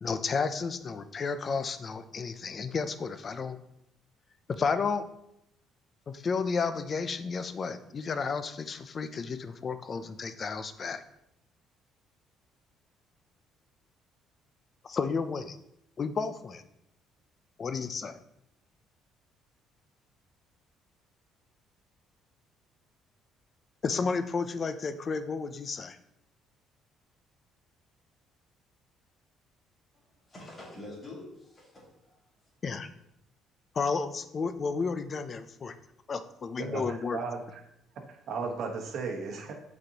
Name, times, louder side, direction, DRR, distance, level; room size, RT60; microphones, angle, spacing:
voice 1, 0.0-3.6 4.5-5.0 6.1-11.0 14.8-15.6 16.0-16.6 17.6-18.2 23.8-26.0 32.6-32.9 33.7-35.7 36.1-37.2, left 5 dB, 35° left, 0.5 m, -32 dB
voice 2, 29.9-32.2, left 2 dB, 20° left, 2.0 m, -46 dB
voice 3, 36.6-37.6 38.1-39.5, right 4 dB, 60° right, 1.2 m, -35 dB
7.8 x 4.2 x 2.9 m
cardioid pair, 125°, 0 cm